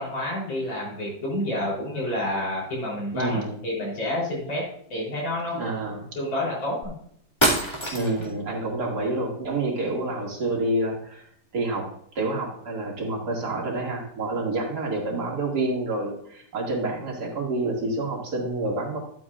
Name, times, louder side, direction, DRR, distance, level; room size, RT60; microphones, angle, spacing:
voice 1, 0.0-5.7 6.2-6.9, left 1 dB, 85° left, -5 dB, 4.4 m, -29 dB
voice 2, 3.1-3.6 5.5-6.0 7.9-11.3 11.5-11.8 12.1-19.0, right 2 dB, 60° right, -1 dB, 2.7 m, -28 dB
sound 1, 6.8-6.9 7.4-8.3, equal, 15° left, 1.9 m, -24 dB
11.5 x 8.5 x 2.5 m, 0.67 s
omnidirectional pair, 2.1 m